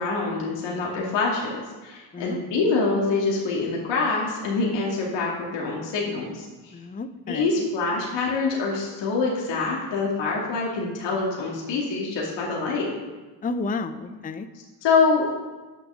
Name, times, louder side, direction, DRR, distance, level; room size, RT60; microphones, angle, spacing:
voice 1, 0.0-6.8 7.3-12.9 14.8-15.3, left 4 dB, 70° left, -3 dB, 2.4 m, -25 dB
voice 2, 6.7-7.5 13.4-14.5, left 3 dB, 20° left, 10 dB, 0.6 m, -31 dB
8.5 x 7.1 x 6.3 m, 1.2 s
supercardioid pair, 75°, 45 cm